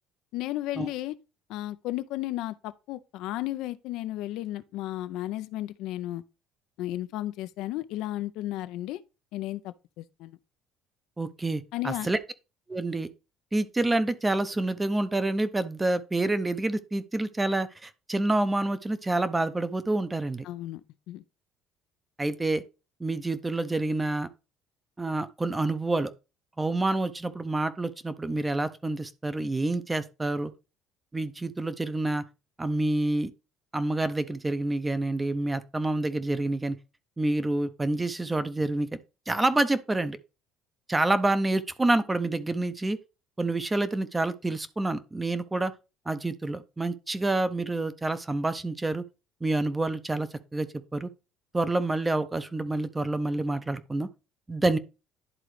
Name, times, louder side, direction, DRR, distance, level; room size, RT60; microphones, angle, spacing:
voice 1, 0.3-1.2 1.5-6.2 6.8-9.0 9.3-10.4 11.7-12.1 20.4-20.8 21.1-21.2, left 15 dB, 75° left, 0.4 m, -34 dB
voice 2, 11.2-12.2 12.7-13.1 13.5-20.5 22.2-22.6 23.0-24.3 25.0-26.1 26.6-30.5 31.1-32.2 32.6-33.3 33.7-36.8 37.2-38.9 39.3-40.2 40.9-43.0 43.4-45.7 46.1-49.0 49.4-51.1 51.5-54.1 54.5-54.8, right 2 dB, 15° right, 0.6 m, -28 dB
11.0 x 3.8 x 3.2 m
cardioid pair, 115°, 0 cm